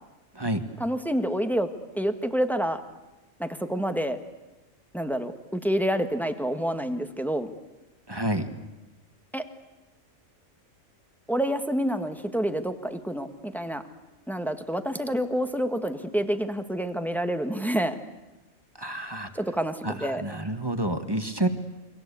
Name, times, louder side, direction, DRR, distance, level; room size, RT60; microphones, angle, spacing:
voice 1, 0.8-1.7 1.9-2.8 3.4-4.2 4.9-7.5 9.3-9.4 11.3-13.8 14.3-18.0 19.3-20.2, equal, ahead, 7 dB, 1.5 m, -28 dB
voice 2, 8.1-8.5 18.8-19.3 19.8-21.5, right 1 dB, 20° right, 8 dB, 1.6 m, -29 dB
29.0 x 23.5 x 8.4 m, 1.1 s
omnidirectional pair, 1.4 m